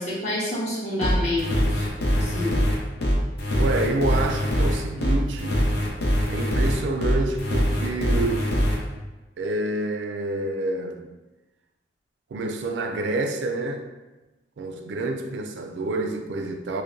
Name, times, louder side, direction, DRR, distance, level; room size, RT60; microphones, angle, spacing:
voice 1, 0.0-1.9 2.1-2.6, left 1 dB, 40° left, 1.2 m, -28 dB
sound 1, 1.0-8.8, equal, 65° left, 0.7 m, -23 dB
voice 2, 3.6-5.7 6.3-8.5 9.4-11.1 12.3-13.9 14.6-16.8, right 2 dB, 85° right, 0.4 m, -28 dB
5.1 x 2.1 x 2.5 m
head